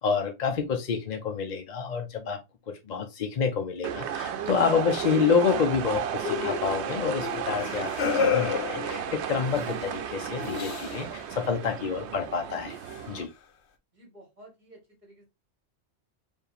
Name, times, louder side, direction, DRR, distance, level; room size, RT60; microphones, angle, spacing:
voice 1, 0.0-2.4 2.7-12.8 13.1-13.3, left 6 dB, 50° left, 0.6 m, -28 dB
sound 1, 3.8-13.2, right 8 dB, 80° right, 0.9 m, -33 dB
sound 2, 6.2-9.7 10.4-11.1 12.9-13.0, left 6 dB, 80° left, 0.9 m, -30 dB
voice 2, 13.9-15.3, right 1 dB, 40° right, 1.9 m, -52 dB
4.6 x 2.5 x 3.2 m
omnidirectional pair, 1.1 m